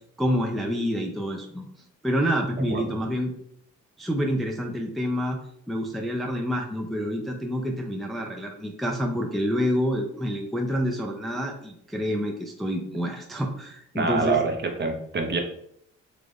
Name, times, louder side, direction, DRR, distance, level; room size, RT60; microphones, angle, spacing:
voice 1, 0.2-1.7 2.0-3.3 4.0-5.4 5.7-14.4, equal, ahead, 1 dB, 0.6 m, -27 dB
voice 2, 13.9-14.5 14.8-15.4, right 4 dB, 35° right, 3 dB, 0.9 m, -25 dB
3.9 x 3.2 x 3.4 m, 0.71 s
cardioid pair, 90°, 30 cm